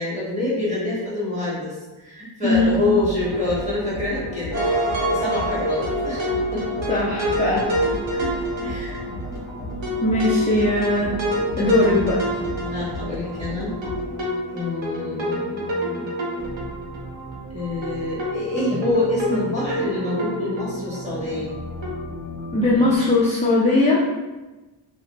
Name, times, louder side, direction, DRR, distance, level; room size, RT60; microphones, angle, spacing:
voice 1, 0.0-6.2 6.5-6.8 8.6-9.0 12.3-12.4 12.7-13.7 14.5-16.1 17.5-21.5, left 2 dB, 15° right, -8 dB, 1.3 m, -26 dB
voice 2, 2.4-2.8 6.9-7.6 8.1-8.3 10.0-11.1 11.6-12.2 22.5-24.0, left 2 dB, 15° left, -7 dB, 0.4 m, -19 dB
sound 1, 2.5-14.0, equal, 70° left, 0.6 m, -34 dB
sound 2, 4.5-9.4 9.8-13.4 13.8-17.0 17.3-17.4 17.8-17.9 18.2-18.3 18.6-21.0 21.3-21.4 21.8-21.9, equal, 70° right, 0.8 m, -26 dB
sound 3, 7.5-23.0, equal, 40° right, 1.1 m, -36 dB
2.5 x 2.2 x 2.9 m, 1.1 s
wide cardioid pair, 70°, 48 cm